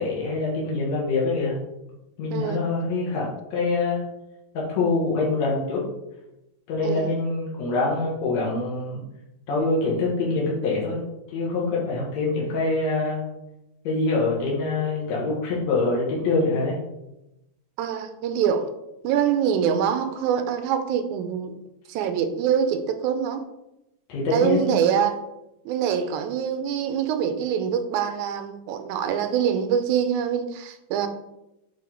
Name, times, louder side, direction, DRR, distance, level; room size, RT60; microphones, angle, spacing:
voice 1, 0.0-1.5 2.2-4.0 4.5-5.8 6.7-9.0 9.5-11.0 11.3-13.2 13.8-16.8 24.1-24.8, left 3 dB, 60° left, -5 dB, 2.7 m, -25 dB
voice 2, 2.3-2.6 6.8-7.1 17.8-18.7 19.0-21.6 21.9-23.4 24.3-25.2 25.7-31.1, right 8 dB, 80° right, 8 dB, 2.0 m, -24 dB
8.5 x 3.6 x 4.5 m, 0.92 s
omnidirectional pair, 3.5 m